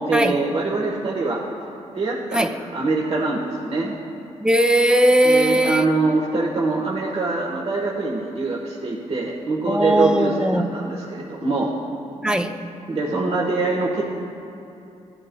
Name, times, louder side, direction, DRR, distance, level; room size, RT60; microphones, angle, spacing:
voice 1, 0.0-1.4 1.9-3.9 5.2-11.7 12.9-14.0, right 3 dB, 50° right, -4 dB, 1.3 m, -24 dB
voice 2, 4.4-5.9 9.7-10.8 12.2-12.6, right 1 dB, 5° right, 6 dB, 0.5 m, -19 dB
15.5 x 9.7 x 2.3 m, 2.8 s
cardioid pair, 80°, 13 cm